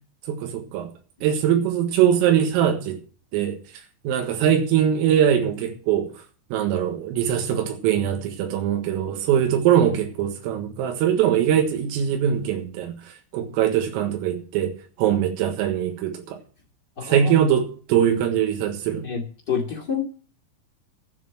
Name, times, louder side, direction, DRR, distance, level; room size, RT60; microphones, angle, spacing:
voice 1, 0.3-0.9 1.2-3.0 3.3-3.6 4.1-6.1 6.5-12.9 13.3-16.4 17.0-19.1, right 9 dB, 85° right, 4 dB, 4.1 m, -22 dB
voice 2, 17.0-17.3 19.0-20.0, left 6 dB, 55° left, -2 dB, 1.1 m, -28 dB
12.0 x 7.8 x 7.7 m, 0.40 s
omnidirectional pair, 5.9 m